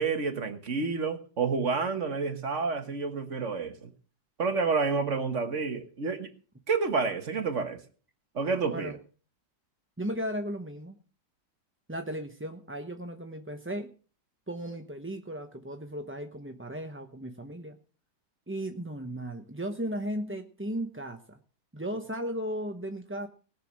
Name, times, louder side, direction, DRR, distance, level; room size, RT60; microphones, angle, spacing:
voice 1, 0.0-3.9 4.4-6.3 6.7-7.8 8.3-9.0, right 4 dB, 45° right, 8 dB, 1.6 m, -29 dB
voice 2, 10.0-11.0 11.9-13.9 14.5-17.8 18.5-21.4 21.7-23.3, right 1 dB, 10° right, 5 dB, 0.6 m, -36 dB
19.5 x 6.8 x 6.2 m, 0.40 s
omnidirectional pair, 1.8 m